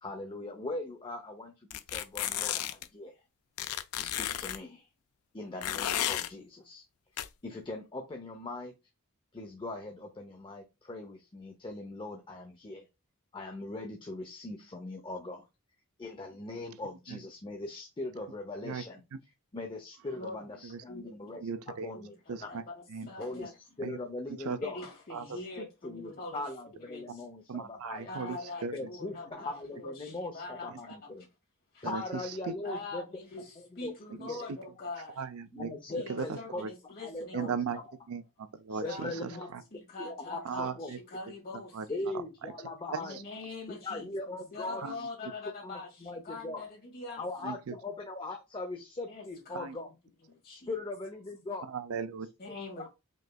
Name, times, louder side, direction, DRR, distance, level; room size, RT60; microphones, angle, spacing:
voice 1, 0.0-3.2 3.9-4.9 5.3-6.8 7.4-8.7 9.3-12.9 13.3-15.5 16.0-19.0 19.5-21.4 21.7-22.1 22.4-22.6 23.2-23.5 23.8-24.8 25.6-28.2 28.7-31.3 31.8-33.0 33.8-33.9 34.3-34.5 35.5-36.6 37.0-37.6 38.7-39.5 40.0-40.9 41.9-43.2 43.8-45.1 45.6-46.6 47.2-49.9 50.5-51.7 52.7-52.9, left 2 dB, 20° left, 0.6 m, -40 dB
sound 1, 1.7-2.9 3.6-4.6 5.6-6.3 7.2-7.3, left 12 dB, 75° left, 0.4 m, -33 dB
voice 2, 21.3-21.9 22.3-22.6 22.9-23.1 23.8-24.0 24.4-24.6 25.1-25.4 27.5-28.8 30.7-30.8 31.8-32.5 34.2-34.6 35.2-35.7 36.1-36.7 37.3-37.8 38.1-39.6 40.4-41.0 41.7-41.9 42.9-43.0 44.8-45.1 47.4-47.7 49.5-49.8 51.6-52.3, right 5 dB, 70° right, 0.5 m, -37 dB
voice 3, 22.5-23.5 24.6-26.4 26.9-27.2 28.1-31.0 31.7-31.9 32.6-35.2 35.9-37.8 38.8-42.1 43.0-44.1 44.5-47.5 49.1-49.6 50.3-50.7 52.4-52.9, left 3 dB, 45° left, 2.0 m, -44 dB
5.2 x 3.2 x 2.2 m
head